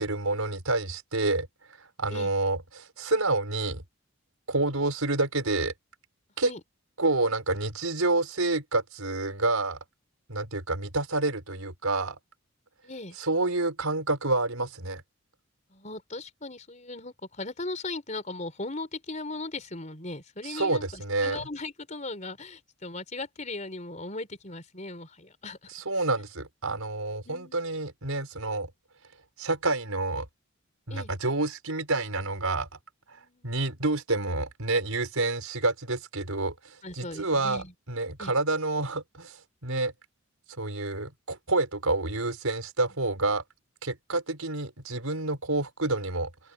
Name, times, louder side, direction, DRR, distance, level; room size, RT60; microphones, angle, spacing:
voice 1, 0.0-1.5 1.8-3.8 4.5-5.7 6.4-6.5 7.0-9.8 10.3-12.2 13.2-15.0 20.4-21.4 25.7-28.7 29.4-30.3 30.9-32.7 33.4-39.9 40.6-43.4 43.8-46.3, right 2 dB, 80° right, 5.0 m, -28 dB
voice 2, 12.8-13.2 15.7-25.7 27.3-27.7 30.9-31.1 33.1-33.6 36.8-37.7 38.2-38.3, left 2 dB, 35° left, 4.2 m, -38 dB
open air
head